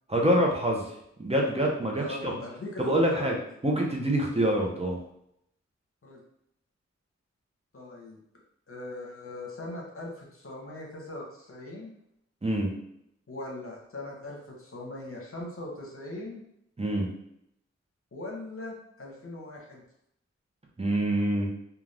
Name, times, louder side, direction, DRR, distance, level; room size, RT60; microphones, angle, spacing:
voice 1, 0.1-0.8 1.2-2.3 2.8-3.4 3.6-5.0 12.4-12.7 16.8-17.1 20.8-21.5, right 1 dB, 20° right, -1 dB, 0.7 m, -25 dB
voice 2, 1.9-3.3 6.0-6.2 7.7-8.2 8.7-11.9 13.3-16.4 18.1-19.8, left 1 dB, 50° left, -1 dB, 0.9 m, -40 dB
2.4 x 2.3 x 3.3 m, 0.77 s
cardioid pair, 40°, 29 cm